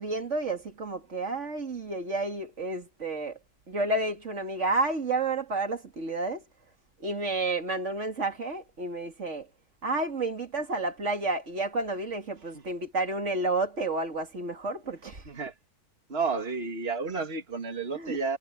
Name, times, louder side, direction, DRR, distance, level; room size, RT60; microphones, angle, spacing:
voice 1, 0.0-3.4 3.7-6.4 7.0-9.5 9.8-15.2 17.9-18.4, right 2 dB, 25° right, 1.9 m, -30 dB
voice 2, 15.2-15.5 16.1-18.4, right 4 dB, 90° right, 0.5 m, -31 dB
omnidirectional pair, 4.5 m